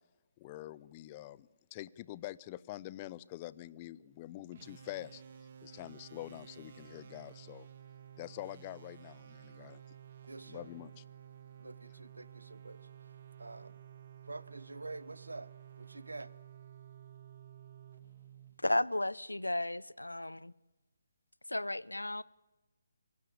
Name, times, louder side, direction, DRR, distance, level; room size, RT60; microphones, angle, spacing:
voice 1, 0.4-5.2 5.6-7.7 8.2-9.8 10.5-11.0, left 15 dB, 25° left, 0.6 m, -46 dB
sound 1, 4.5-19.1, right 9 dB, 45° right, 1.8 m, -53 dB
voice 2, 10.3-10.7 11.6-12.9 13.4-13.8 14.2-15.5 15.8-16.3, right 2 dB, 80° right, 0.9 m, -47 dB
voice 3, 18.6-20.5 21.5-22.2, left 1 dB, 90° left, 0.6 m, -34 dB
24.5 x 16.0 x 8.5 m
figure-of-eight pair, 145°, 0 cm